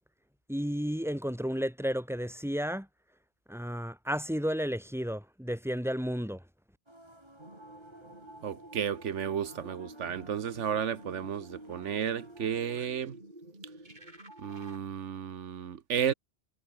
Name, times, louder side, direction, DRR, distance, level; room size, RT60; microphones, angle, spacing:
voice 1, 0.5-2.9 3.5-6.4, equal, ahead, 4.9 m, -32 dB
sound 1, 6.9-12.9, right 1 dB, 20° right, 6.6 m, -57 dB
sound 2, 7.4-14.8, right 1 dB, 40° right, 5.7 m, -50 dB
voice 2, 8.4-13.2 14.4-16.1, right 8 dB, 85° right, 1.3 m, -33 dB
omnidirectional pair, 1.2 m